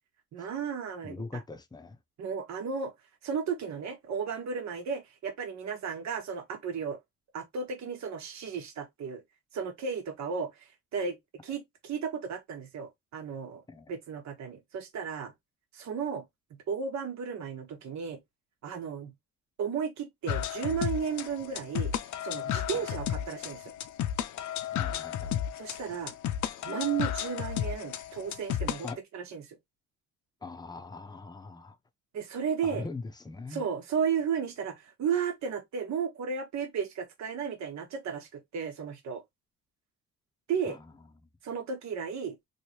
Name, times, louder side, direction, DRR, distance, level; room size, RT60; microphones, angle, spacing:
voice 1, 0.3-1.4 2.2-2.9 3.2-7.0 7.3-9.2 9.5-11.2 11.4-13.6 13.9-15.3 15.7-16.2 16.7-18.2 18.6-19.1 19.6-21.9 22.2-23.7 25.6-26.1 26.6-28.9 29.1-29.6 32.1-32.9 33.5-39.2 40.5-40.8 41.4-42.4, right 6 dB, 65° right, 1.3 m, -34 dB
voice 2, 1.0-2.0 13.7-13.9 22.7-22.8 24.7-25.4 28.8-29.0 30.4-31.8 32.6-33.6 40.7-40.8, left 3 dB, 15° left, 0.6 m, -41 dB
sound 1, 20.3-28.9, left 10 dB, 70° left, 0.6 m, -33 dB
3.1 x 2.7 x 2.9 m
cardioid pair, 90°, 30 cm